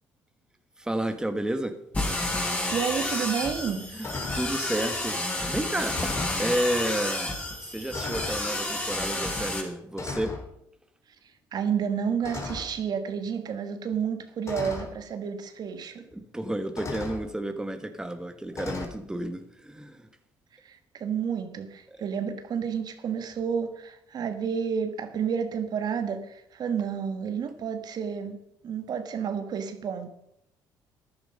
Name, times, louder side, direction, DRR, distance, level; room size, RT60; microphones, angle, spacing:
voice 1, 0.8-1.7 3.9-7.3 7.6-10.3 16.1-20.1 21.9-22.0, right 1 dB, 10° right, 1.5 m, -31 dB
sound 1, 1.9-9.6, left 1 dB, 15° left, 5.4 m, -30 dB
voice 2, 2.7-3.9 11.5-16.0 20.6-30.1, right 7 dB, 55° right, 1.6 m, -30 dB
sound 2, 3.5-3.8 4.0-4.5 5.3-5.5 5.8-6.5 7.4-7.6 7.9-8.4 9.4-9.6 10.0-10.4 12.2-12.8 13.9-14.0 14.5-14.9 16.1-16.2 16.8-17.2 18.6-18.9, left 3 dB, 35° left, 3.5 m, -36 dB
13.5 x 11.0 x 5.4 m
supercardioid pair, 80°, 8 cm